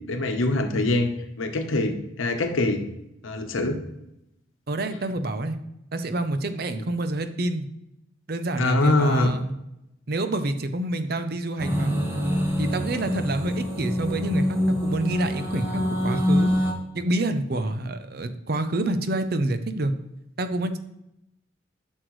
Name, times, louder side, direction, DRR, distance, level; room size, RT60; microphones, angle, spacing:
voice 1, 0.1-1.1 1.4-2.8 3.2-3.8 8.6-9.3, left 2 dB, 85° left, 6 dB, 0.9 m, -23 dB
voice 2, 4.7-5.6 5.9-7.7 8.3-9.5 10.1-12.0 12.6-14.5 14.8-16.5 16.9-19.9 20.4-20.8, right 2 dB, 50° right, 9 dB, 0.6 m, -27 dB
sound 1, 11.6-16.7, equal, 10° right, 1.0 m, -25 dB
10.0 x 6.4 x 3.1 m, 0.84 s
head